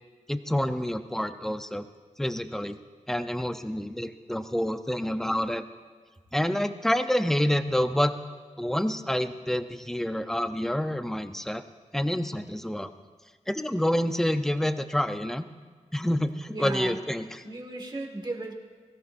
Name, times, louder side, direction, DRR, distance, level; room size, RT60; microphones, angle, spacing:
voice 1, 0.3-1.9 2.2-2.8 3.1-5.6 6.3-8.1 8.6-11.6 11.9-12.9 13.5-15.5 15.9-17.4, equal, 5° left, 8 dB, 0.6 m, -28 dB
voice 2, 16.5-17.0 17.4-18.5, right 2 dB, 35° right, 1 dB, 1.9 m, -35 dB
22.5 x 16.0 x 2.6 m, 1.5 s
wide cardioid pair, 115°, 13 cm